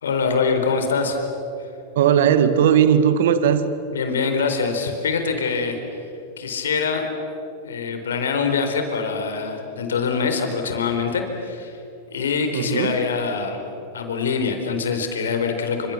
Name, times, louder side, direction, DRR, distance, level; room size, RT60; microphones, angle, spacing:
voice 1, 0.0-1.2 3.9-5.8 6.4-7.1 7.6-11.8 12.1-13.6 13.9-15.9, left 5 dB, 80° left, 5 dB, 4.4 m, -24 dB
voice 2, 2.0-3.6 12.5-13.0, right 8 dB, 70° right, 11 dB, 2.0 m, -17 dB
29.0 x 27.0 x 7.4 m, 2.8 s
hypercardioid pair, 95°, 0 cm